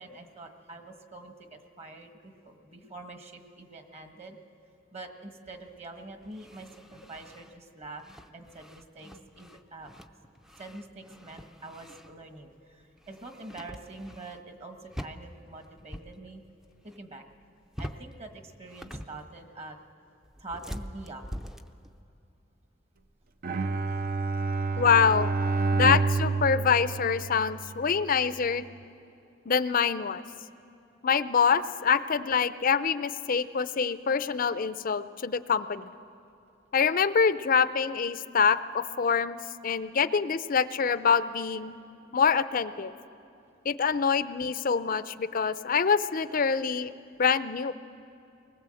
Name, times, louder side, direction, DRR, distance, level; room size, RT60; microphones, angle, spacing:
voice 1, 0.0-4.4 4.9-8.0 8.3-9.9 10.6-16.4 16.8-17.2 17.8-19.8 20.4-21.2 23.9-24.1 24.7-25.7 46.9-47.2, right 2 dB, 35° right, 6 dB, 1.4 m, -45 dB
sound 1, 5.5-12.4 12.7-14.6 14.9-16.1 16.4-17.0 17.3-18.2 18.5-19.5 20.2-22.0, equal, ahead, 0.5 m, -44 dB
Bowed string instrument, 23.4-27.8, right 3 dB, 50° right, 0.6 m, -28 dB
voice 2, 24.8-25.3 25.7-28.6 29.5-30.2 31.0-35.9 36.7-39.4 39.6-41.7 42.1-42.9 43.6-46.9 47.2-47.7, left 6 dB, 45° left, 14 dB, 0.5 m, -25 dB
20.5 x 20.0 x 7.7 m, 2.7 s
head